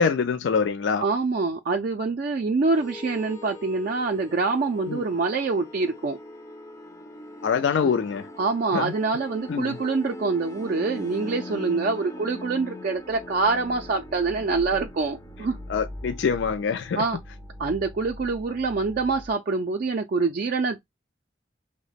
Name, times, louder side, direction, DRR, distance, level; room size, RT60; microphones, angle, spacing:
voice 1, 0.0-1.0 4.9-5.0 7.4-8.3 8.7-8.9 9.5-9.8 15.7-17.0, left 6 dB, 70° left, 0.4 m, -24 dB
voice 2, 1.0-6.2 7.8-7.9 8.4-15.6 17.0-17.2 17.6-20.8, right 4 dB, 50° right, 0.4 m, -25 dB
sound 1, 2.7-19.3, left 1 dB, 15° left, 0.5 m, -41 dB
2.9 x 2.1 x 3.9 m
head